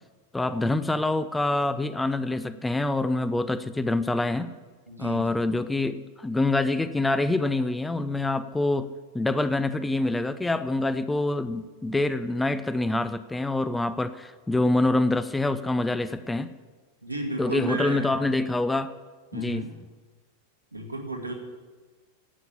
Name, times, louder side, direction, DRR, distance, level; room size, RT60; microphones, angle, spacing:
voice 1, 0.3-4.5 5.0-8.9 9.1-16.5 17.4-18.9 19.3-19.6, left 2 dB, 10° left, 13 dB, 0.5 m, -26 dB
voice 2, 4.9-5.3 17.0-18.2 19.3-19.7 20.7-21.3, right 1 dB, 85° right, 0 dB, 2.0 m, -33 dB
11.0 x 8.2 x 8.9 m, 1.4 s
figure-of-eight pair, 90°, 0 cm